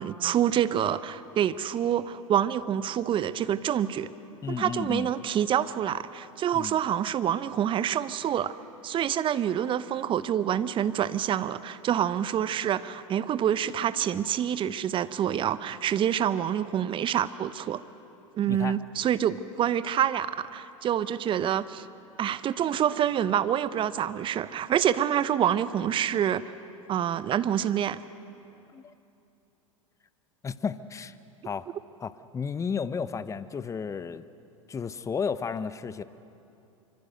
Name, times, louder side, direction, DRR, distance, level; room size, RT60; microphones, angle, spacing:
voice 1, 0.0-4.1 4.5-8.5 8.8-17.8 18.4-21.9 22.2-26.4 26.9-28.0, right 10 dB, 30° right, 15 dB, 0.8 m, -27 dB
voice 2, 4.4-5.1 6.5-6.8 18.4-18.8 28.7-28.9 30.4-31.1 31.4-31.7 32.0-34.2 34.7-36.0, left 6 dB, 15° left, 14 dB, 0.8 m, -33 dB
25.0 x 24.5 x 6.6 m, 2.8 s
hypercardioid pair, 90°, 17 cm